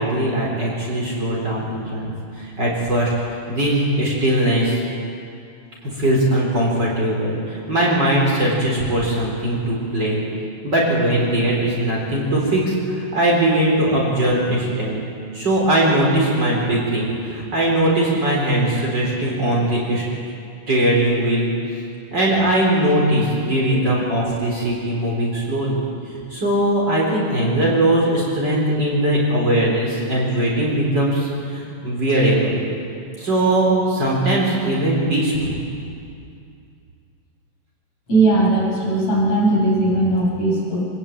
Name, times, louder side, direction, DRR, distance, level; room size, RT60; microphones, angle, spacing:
voice 1, 0.0-3.1 3.5-4.8 5.8-10.3 10.6-15.0 15.3-20.0 20.7-21.5 22.1-25.9 26.3-32.6 33.2-35.6, right 1 dB, 30° right, -4 dB, 4.7 m, -20 dB
voice 2, 38.1-40.9, right 2 dB, 50° left, -4 dB, 6.7 m, -18 dB
25.5 x 18.0 x 8.8 m, 2.5 s
omnidirectional pair, 3.9 m